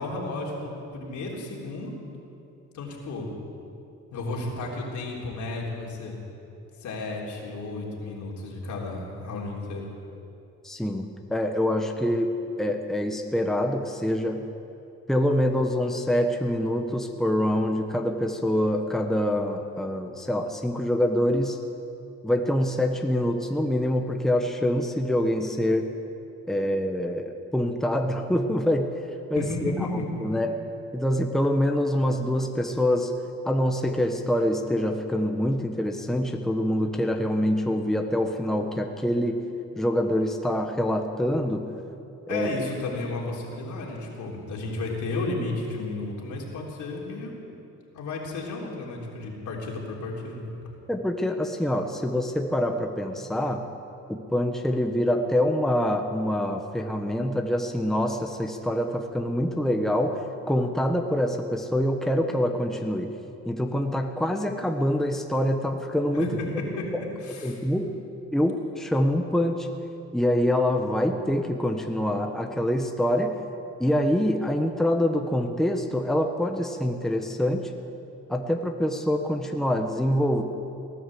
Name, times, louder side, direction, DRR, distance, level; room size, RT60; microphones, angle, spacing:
voice 1, 0.0-1.9 2.7-3.3 4.1-6.2 6.8-9.9 29.4-30.2 42.3-47.3 47.9-50.5 66.1-66.9 67.2-67.6, left 2 dB, 75° left, -2 dB, 3.6 m, -33 dB
voice 2, 10.6-12.3 12.6-14.4 15.1-21.6 22.2-25.9 26.5-28.9 29.3-30.6 30.9-33.1 33.4-39.4 39.8-41.7 42.3-42.5 50.9-53.6 54.1-63.1 63.4-66.3 66.9-67.0 67.4-67.9 68.3-69.7 70.1-73.4 73.8-77.7 78.3-80.4, left 1 dB, ahead, 4 dB, 1.1 m, -25 dB
18.0 x 10.0 x 7.8 m, 2.8 s
cardioid pair, 90°, 30 cm